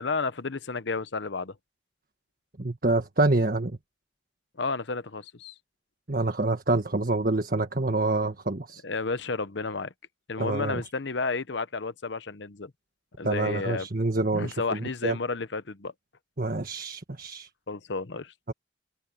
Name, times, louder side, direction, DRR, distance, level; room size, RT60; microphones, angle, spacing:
voice 1, 0.0-1.5 4.6-5.5 8.8-9.9 10.3-12.7 13.2-13.9 14.3-15.9 17.7-18.3, left 4 dB, 65° left, 0.9 m, -31 dB
voice 2, 2.6-3.8 6.1-8.8 10.4-10.8 13.2-15.2 16.4-17.5 18.5-18.6, right 2 dB, 50° right, 1.6 m, -27 dB
head